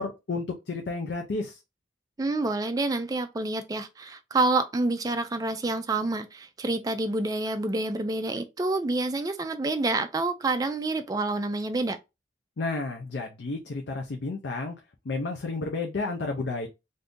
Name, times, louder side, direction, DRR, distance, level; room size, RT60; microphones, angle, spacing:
voice 1, 0.0-1.6 12.6-14.7 15.0-16.7, left 3 dB, 70° left, 0.5 m, -31 dB
voice 2, 2.2-12.0, right 2 dB, 20° right, 0.3 m, -28 dB
2.6 x 2.6 x 3.5 m
head